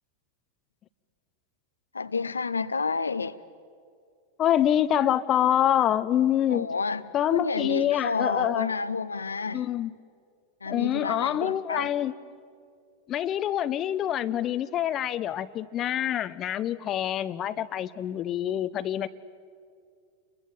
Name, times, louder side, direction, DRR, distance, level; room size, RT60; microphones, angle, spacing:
voice 1, 1.9-3.4 6.5-9.7 10.6-11.9, left 4 dB, 75° left, 0.8 m, -30 dB
voice 2, 4.4-6.7 7.1-8.7 9.5-9.9 10.7-12.1 13.1-19.1, left 11 dB, 30° left, 0.8 m, -26 dB
30.0 x 22.5 x 8.8 m
figure-of-eight pair, 90°, 0 cm